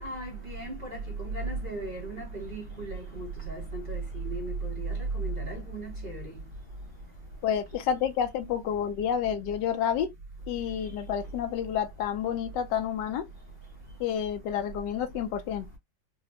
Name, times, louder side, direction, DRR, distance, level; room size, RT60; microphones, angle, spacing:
voice 1, 0.0-4.0 4.3-4.9 5.1-6.2, right 3 dB, 50° right, 0.6 m, -35 dB
voice 2, 7.4-10.1 10.5-13.3 14.0-15.7, left 9 dB, 75° left, 1.2 m, -29 dB
3.9 x 2.1 x 2.6 m
omnidirectional pair, 2.1 m